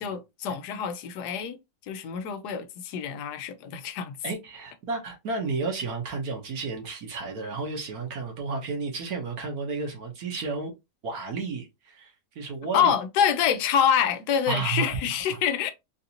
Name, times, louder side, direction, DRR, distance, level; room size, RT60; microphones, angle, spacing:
voice 1, 0.0-1.6 1.9-4.2 12.7-15.7, left 8 dB, 90° left, 1.2 m, -26 dB
voice 2, 4.2-10.7 11.0-12.9 14.5-15.4, right 4 dB, 65° right, 1.4 m, -32 dB
4.0 x 2.5 x 2.8 m
omnidirectional pair, 1.7 m